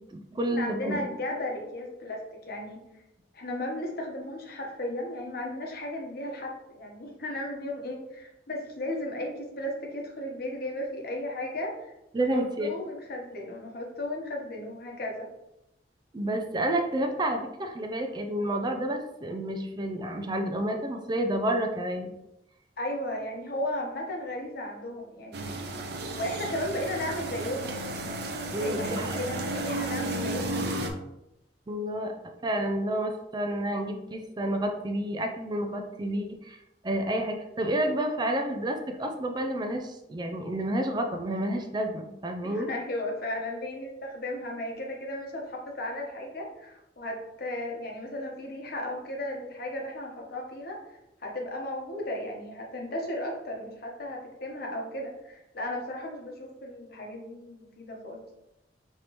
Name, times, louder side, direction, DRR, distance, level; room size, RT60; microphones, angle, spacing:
voice 1, 0.0-1.0 12.1-12.7 16.1-22.1 28.5-29.2 31.7-32.1 32.4-36.6 36.8-42.7, right 1 dB, 25° right, 5 dB, 0.4 m, -30 dB
voice 2, 0.5-2.9 3.3-15.3 22.8-25.7 26.1-27.8 28.6-30.7 42.4-58.2, left 1 dB, 60° left, 0 dB, 1.0 m, -35 dB
sound 1, 25.3-30.9, right 1 dB, 65° right, 0.6 m, -33 dB
5.5 x 3.3 x 3.0 m, 0.89 s
head